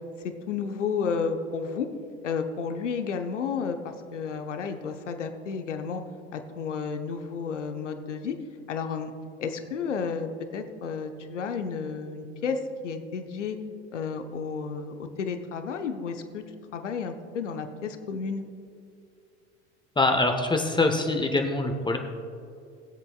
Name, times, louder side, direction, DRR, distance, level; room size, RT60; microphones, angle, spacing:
voice 1, 0.5-1.9 2.2-6.0 6.3-8.4 8.7-9.1 9.4-13.6 13.9-16.4 16.7-18.4, left 5 dB, 80° left, 7 dB, 0.9 m, -32 dB
voice 2, 20.0-22.0, left 2 dB, 15° left, 4 dB, 1.0 m, -24 dB
20.5 x 7.9 x 2.4 m, 2.4 s
figure-of-eight pair, 75°, 36 cm